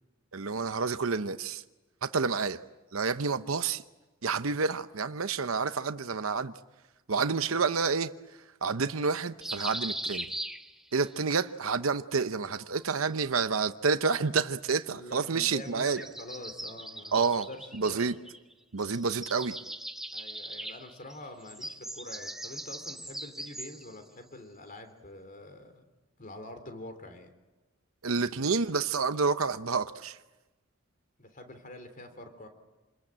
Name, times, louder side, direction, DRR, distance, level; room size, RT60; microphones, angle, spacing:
voice 1, 0.3-1.6 2.0-2.6 2.9-3.8 4.2-6.5 7.1-8.1 8.6-10.3 10.9-16.0 17.1-17.5 17.7-18.1 18.7-19.6 28.0-30.2, right 5 dB, 80° right, 0.9 m, -29 dB
sound 1, 9.4-11.1 12.6-13.6 15.5-18.5 18.8-24.0, right 1 dB, ahead, 1.2 m, -40 dB
voice 2, 14.9-18.2 20.1-25.9 26.2-27.3 31.2-32.5, left 1 dB, 40° left, 3.4 m, -46 dB
28.0 x 21.5 x 8.9 m
head